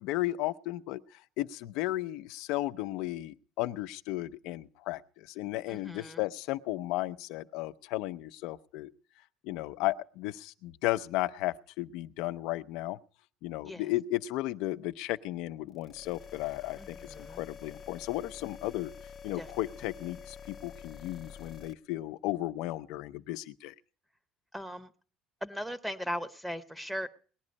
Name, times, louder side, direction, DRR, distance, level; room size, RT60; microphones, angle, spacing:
voice 1, 0.0-8.9 9.4-13.0 13.4-18.9 19.2-23.7, left 17 dB, 75° left, 13 dB, 0.6 m, -34 dB
voice 2, 5.7-6.2 13.6-13.9 16.8-17.4 19.4-19.5 24.5-24.9 25.4-27.1, equal, 5° right, 10 dB, 0.8 m, -38 dB
sound 1, 15.7-21.7, left 6 dB, 35° left, 0.7 m, -48 dB
19.5 x 11.0 x 5.2 m, 0.43 s
cardioid pair, 140°, 0 cm